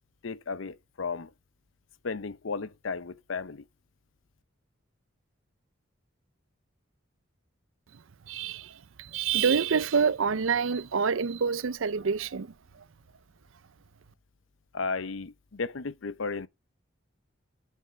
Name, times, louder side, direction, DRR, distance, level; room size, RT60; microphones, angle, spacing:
voice 1, 0.2-1.3 2.0-3.6 14.7-16.5, left 4 dB, 75° left, 0.7 m, -34 dB
voice 2, 8.3-12.5, right 6 dB, 75° right, 0.6 m, -27 dB
8.3 x 8.2 x 6.8 m
head